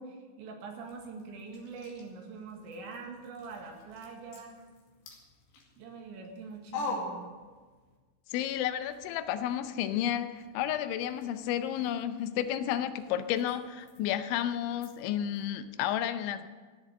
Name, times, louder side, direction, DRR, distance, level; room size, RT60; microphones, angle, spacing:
voice 1, 0.0-4.5 5.8-7.2, right 4 dB, 80° right, 2 dB, 4.1 m, -44 dB
sound 1, 0.8-8.0 8.3-15.5, left 2 dB, 70° left, 4.3 m, -46 dB
voice 2, 8.3-16.5, left 10 dB, 85° left, 10 dB, 3.1 m, -32 dB
16.0 x 7.5 x 8.4 m, 1.4 s
omnidirectional pair, 5.4 m